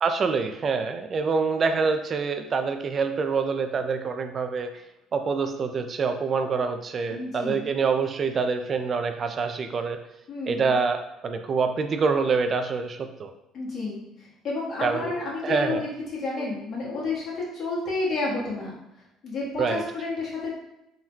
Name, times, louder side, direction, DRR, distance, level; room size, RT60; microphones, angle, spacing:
voice 1, 0.0-4.7 5.1-10.0 10.5-13.3 14.8-15.1 15.4-15.8 16.4-16.5 19.6-19.8, right 5 dB, 45° right, 7 dB, 0.3 m, -26 dB
voice 2, 7.1-7.6 10.3-10.7 13.5-18.8 19.2-20.5, left 3 dB, 55° left, -5 dB, 1.4 m, -30 dB
3.5 x 2.2 x 3.0 m, 0.88 s
supercardioid pair, 70°, 0 cm